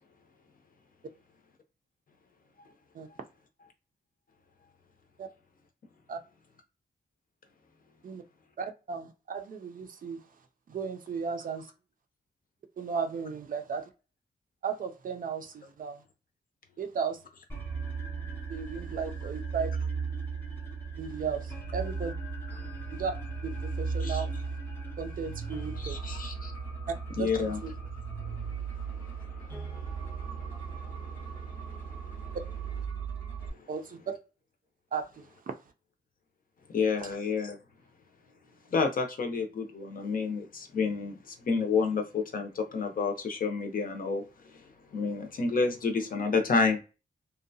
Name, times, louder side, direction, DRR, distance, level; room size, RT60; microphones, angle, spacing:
voice 1, 8.6-10.2 10.7-11.7 12.8-13.9 14.6-16.0 16.8-17.2 18.5-19.7 21.0-22.1 22.9-23.1 23.4-24.3 25.0-26.0 26.9-27.7 33.7-34.0 34.9-35.5 37.0-37.1, right 6 dB, 50° right, 0.4 m, -35 dB
sound 1, 17.5-33.5, right 5 dB, 15° left, 0.5 m, -36 dB
voice 2, 25.8-26.5 27.2-27.6 28.6-32.4 36.7-37.6 38.7-44.2 44.5-44.6 44.9-46.8, left 4 dB, 55° left, 0.6 m, -31 dB
2.6 x 2.2 x 2.6 m
wide cardioid pair, 155°, 18 cm